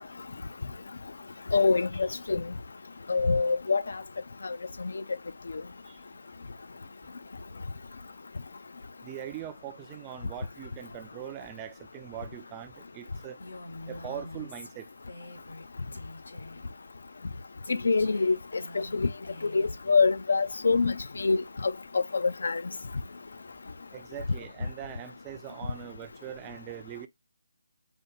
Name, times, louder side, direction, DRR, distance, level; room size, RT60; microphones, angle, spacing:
voice 1, 1.5-2.5 3.1-4.0 4.4-5.0 5.5-5.6 17.7-19.1 19.4-22.6, left 4 dB, 65° left, 0.5 m, -26 dB
voice 2, 9.0-13.4 13.9-14.9 23.9-27.1, right 10 dB, 15° right, 0.4 m, -42 dB
Female speech woman speaking, 13.4-15.7 15.9-16.7 17.6-19.8, left 2 dB, 80° left, 1.8 m, -45 dB
5.2 x 2.2 x 3.8 m
hypercardioid pair, 170°, 0 cm